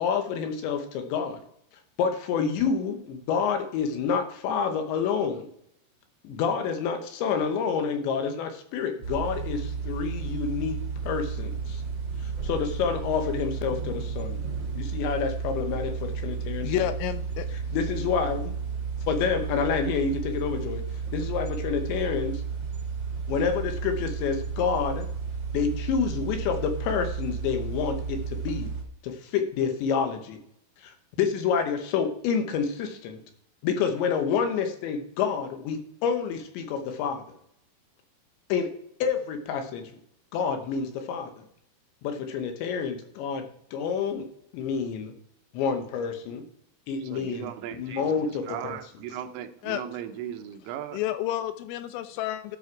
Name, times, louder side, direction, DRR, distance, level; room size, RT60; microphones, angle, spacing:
voice 1, 0.0-1.4 2.0-5.5 6.2-10.8 11.1-11.8 12.4-14.4 14.7-16.9 17.7-18.5 19.1-20.8 21.1-22.4 23.3-25.1 25.5-28.7 29.0-30.4 30.8-33.2 33.6-37.2 38.5-38.7 39.0-40.0 40.3-41.4 42.0-43.5 43.7-44.3 44.5-45.1 45.5-46.4 46.9-48.8, left 6 dB, 75° left, 6 dB, 3.1 m, -28 dB
sound 1, 9.0-28.8, right 5 dB, 45° right, 1.5 m, -33 dB
voice 2, 16.6-17.5 49.6-49.8 50.9-52.6, left 12 dB, 90° left, 11 dB, 3.4 m, -30 dB
voice 3, 47.1-48.2 48.5-51.0, right 10 dB, 85° right, 7 dB, 3.4 m, -37 dB
12.5 x 5.6 x 4.7 m, 0.70 s
omnidirectional pair, 5.7 m